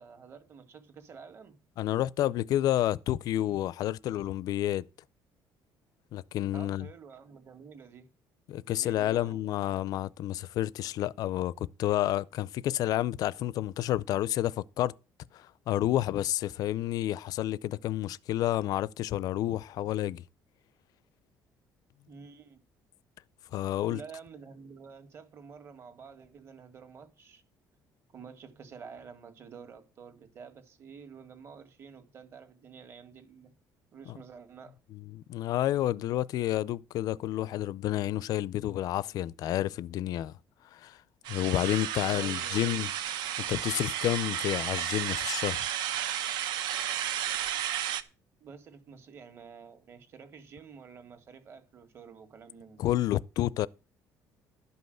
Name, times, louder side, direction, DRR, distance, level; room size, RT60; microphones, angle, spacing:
voice 1, 0.0-1.6 6.5-8.1 8.8-9.4 22.1-22.6 23.9-27.4 28.1-33.5 33.9-34.8 42.1-42.8 48.4-52.8, right 6 dB, 35° right, 1.8 m, -49 dB
voice 2, 1.8-4.9 6.1-6.9 8.5-14.9 15.3-20.2 23.5-24.0 34.1-34.2 34.9-40.3 40.7-41.0 41.3-42.9 43.5-45.6 52.8-53.7, left 13 dB, 55° left, 0.5 m, -30 dB
sound 1, 41.2-48.0, right 11 dB, 75° right, 1.0 m, -33 dB
12.0 x 5.4 x 7.8 m
cardioid pair, 165°, 7 cm